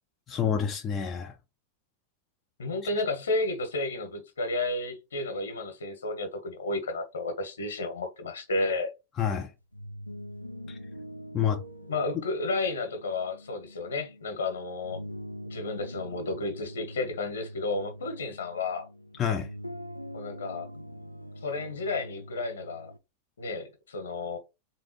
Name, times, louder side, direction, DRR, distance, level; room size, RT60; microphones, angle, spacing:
voice 1, 0.3-1.3 9.2-9.5 10.7-10.8 11.3-11.6 19.2-19.5, left 8 dB, 25° left, 0.5 m, -28 dB
voice 2, 2.6-8.9 11.9-15.0 15.4-18.9 20.1-20.7 21.4-22.9 23.4-24.4, left 2 dB, 70° left, 1.3 m, -32 dB
sound 1, 9.6-23.0, equal, 85° left, 0.4 m, -44 dB
3.8 x 3.3 x 3.1 m
figure-of-eight pair, 90°, 0 cm